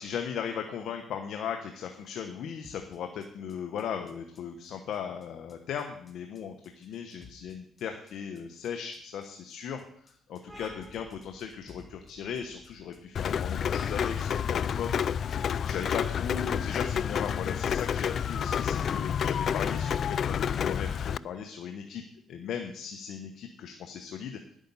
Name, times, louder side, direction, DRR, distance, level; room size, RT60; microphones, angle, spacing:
voice 1, 0.0-15.0 15.6-22.0 22.3-24.4, left 7 dB, 75° left, 5 dB, 1.1 m, -37 dB
sound 1, 2.6-20.9, left 3 dB, 30° left, 1.9 m, -56 dB
sound 2, 10.5-17.8, right 1 dB, 15° right, 3.1 m, -55 dB
Rain, 13.1-21.2, left 8 dB, 60° left, 0.3 m, -29 dB
11.0 x 8.7 x 5.6 m, 0.66 s
cardioid pair, 90°, 0 cm